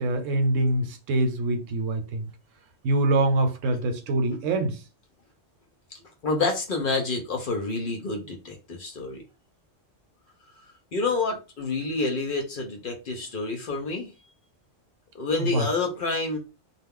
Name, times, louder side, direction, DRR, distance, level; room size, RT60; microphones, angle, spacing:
voice 1, 0.0-2.3 2.8-4.8 15.4-15.7, right 2 dB, 90° right, 1.0 m, -24 dB
voice 2, 6.2-9.2 10.9-14.1 15.1-16.4, left 3 dB, 55° left, 0.7 m, -28 dB
2.3 x 2.0 x 3.5 m
omnidirectional pair, 1.3 m